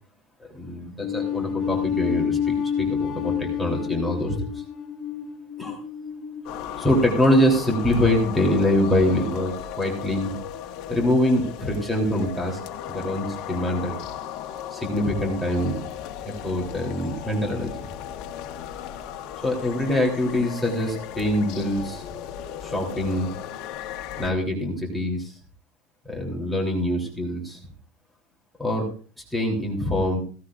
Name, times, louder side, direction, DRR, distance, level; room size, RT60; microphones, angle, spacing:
voice 1, 0.4-4.6 5.6-5.8 6.8-10.3 10.9-12.6 12.9-14.0 14.7-15.8 16.2-17.9 19.4-22.0 22.6-23.3 24.2-25.3 26.0-27.6 28.6-28.8 29.3-30.2, left 1 dB, ahead, -2 dB, 3.3 m, -24 dB
sound 1, 1.0-7.4, left 8 dB, 30° left, 2.9 m, -29 dB
sound 2, 6.4-24.3, left 10 dB, 55° left, 1.4 m, -36 dB
16.5 x 16.0 x 2.5 m, 0.40 s
cardioid pair, 165°, 0 cm